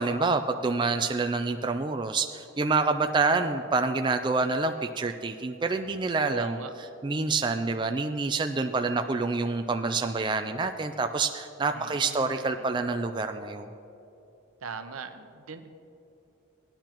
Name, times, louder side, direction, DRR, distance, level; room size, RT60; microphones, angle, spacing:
voice 1, 0.0-6.6 7.0-13.7, right 3 dB, 20° right, 6 dB, 0.3 m, -27 dB
voice 2, 6.3-6.7 11.7-12.6 14.6-15.7, right 4 dB, 80° right, 8 dB, 0.8 m, -40 dB
18.0 x 10.0 x 3.0 m, 2.8 s
head